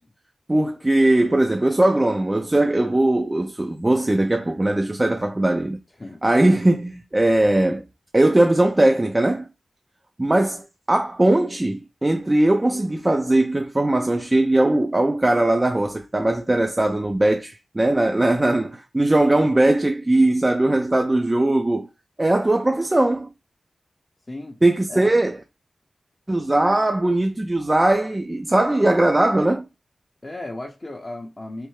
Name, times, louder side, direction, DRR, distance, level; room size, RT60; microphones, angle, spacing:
voice 1, 0.5-5.8 6.2-7.8 8.1-9.5 10.2-10.6 10.9-21.9 22.2-23.3 24.6-25.4 26.3-29.7, right 1 dB, 20° right, 0.4 m, -19 dB
voice 2, 24.3-24.6 24.9-25.1 30.2-31.7, left 2 dB, 30° left, 0.6 m, -35 dB
3.6 x 3.2 x 3.1 m
wide cardioid pair, 95°, 0 cm